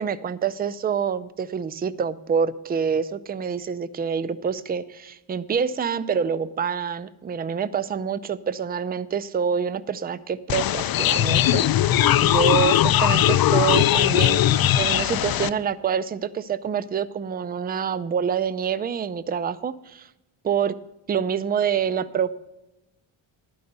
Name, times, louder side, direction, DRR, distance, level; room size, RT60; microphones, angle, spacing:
voice 1, 0.0-14.4 14.8-20.1 20.4-20.8 21.1-22.3, right 7 dB, 20° right, 16 dB, 0.3 m, -26 dB
sound 1, 10.5-15.5, left 12 dB, 50° left, 0.4 m, -19 dB
11.0 x 5.5 x 7.9 m, 0.96 s
cardioid pair, 100°, 49 cm